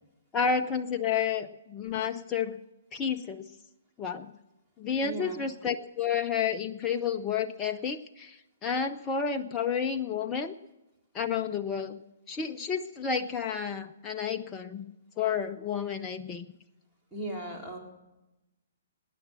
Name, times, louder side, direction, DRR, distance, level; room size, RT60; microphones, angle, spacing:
voice 1, 0.3-2.6 2.9-3.4 4.0-4.3 4.8-10.5 11.1-12.0 12.3-14.9 15.2-16.5, left 6 dB, 20° left, 6 dB, 0.7 m, -31 dB
voice 2, 5.0-5.4 17.1-17.8, right 1 dB, 5° right, -4 dB, 3.7 m, -37 dB
20.0 x 9.5 x 6.2 m, 0.98 s
figure-of-eight pair, 120°, 0 cm